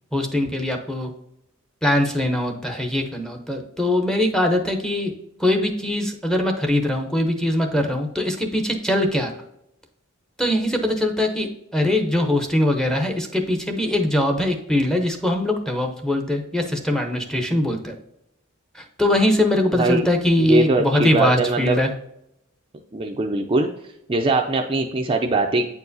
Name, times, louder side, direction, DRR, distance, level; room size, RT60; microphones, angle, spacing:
voice 1, 0.1-1.1 1.8-5.1 5.4-9.3 10.4-17.9 19.0-21.9, left 1 dB, 5° left, 3 dB, 0.8 m, -22 dB
voice 2, 19.7-20.0 20.4-21.8 22.9-23.7 24.1-25.7, right 2 dB, 25° right, 2 dB, 0.4 m, -21 dB
8.6 x 4.6 x 2.7 m, 0.79 s
head